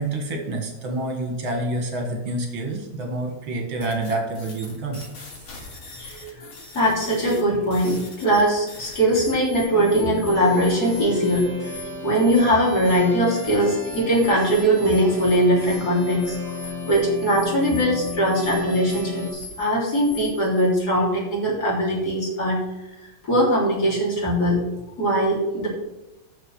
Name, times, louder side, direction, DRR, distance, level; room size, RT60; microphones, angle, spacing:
voice 1, 0.0-5.0, right 2 dB, 75° right, 3 dB, 2.6 m, -28 dB
sound 1, 3.8-20.7, left 2 dB, 70° left, 3.0 m, -41 dB
voice 2, 6.0-11.7 12.0-22.6 23.2-24.6 25.0-25.7, equal, 45° left, -4 dB, 3.8 m, -21 dB
sound 2, 9.7-19.3, left 3 dB, 15° left, 4.5 m, -34 dB
7.5 x 6.8 x 7.7 m, 1.0 s
omnidirectional pair, 2.3 m